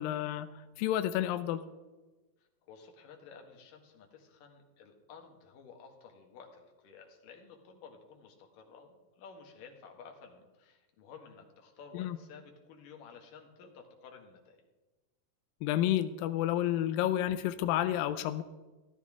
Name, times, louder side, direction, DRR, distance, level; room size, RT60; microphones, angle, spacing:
voice 1, 0.0-1.6 11.9-12.2 15.6-18.4, left 12 dB, 85° left, 11 dB, 2.1 m, -30 dB
voice 2, 2.6-14.7, left 5 dB, 65° left, 2 dB, 3.0 m, -53 dB
14.0 x 14.0 x 3.6 m, 1.2 s
omnidirectional pair, 4.5 m